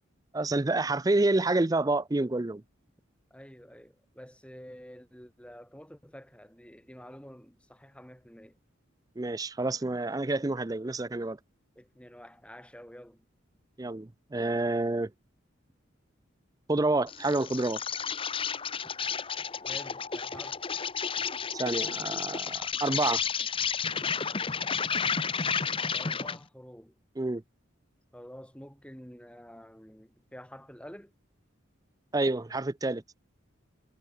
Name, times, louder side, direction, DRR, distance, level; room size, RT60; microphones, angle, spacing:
voice 1, 0.3-2.6 9.2-11.4 13.8-15.1 16.7-17.8 21.5-23.2 27.2-27.4 32.1-33.0, right 2 dB, 20° right, 0.5 m, -28 dB
voice 2, 3.3-8.6 11.8-13.2 19.7-20.6 25.9-27.0 28.1-31.1, equal, 5° left, 5.3 m, -49 dB
Insect, 17.1-26.4, left 6 dB, 25° left, 0.9 m, -32 dB
head